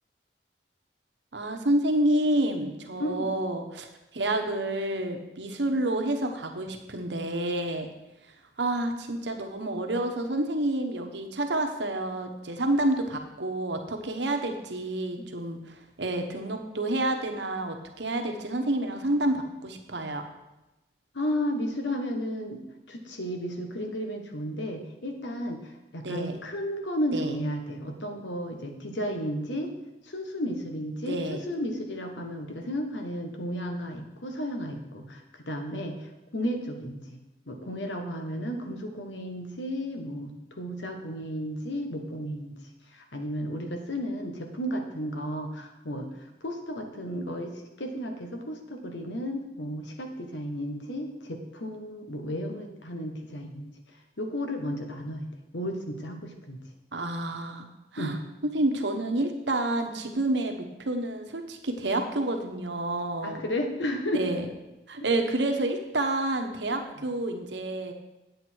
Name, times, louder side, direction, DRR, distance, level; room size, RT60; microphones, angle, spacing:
voice 1, 1.3-3.9 4.1-7.9 8.6-20.3 26.0-26.4 27.1-27.3 31.1-31.4 56.9-57.7 57.9-58.2 58.4-63.4 64.1-64.4 64.9-67.9, right 1 dB, 75° right, 5 dB, 1.2 m, -29 dB
voice 2, 21.1-22.6 22.9-25.6 25.9-29.7 30.0-37.0 37.5-42.5 42.9-46.1 46.4-53.7 54.2-55.3 55.5-56.6 58.0-58.1 63.2-64.2, equal, 85° left, 4 dB, 1.4 m, -33 dB
9.1 x 8.0 x 4.6 m, 0.97 s
head